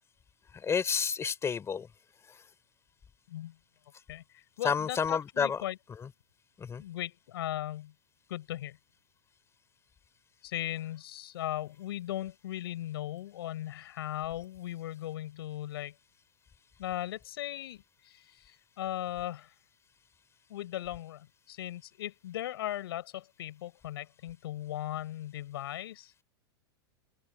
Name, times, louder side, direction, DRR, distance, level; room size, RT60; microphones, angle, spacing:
voice 1, 0.6-1.9 4.6-5.6 6.6-6.8, left 6 dB, 20° left, 3.7 m, -30 dB
voice 2, 4.1-5.8 6.8-7.9 8.3-8.8 10.4-15.9 16.8-19.5 20.5-26.2, left 13 dB, 70° left, 6.4 m, -38 dB
open air
hypercardioid pair, 110°, 13 cm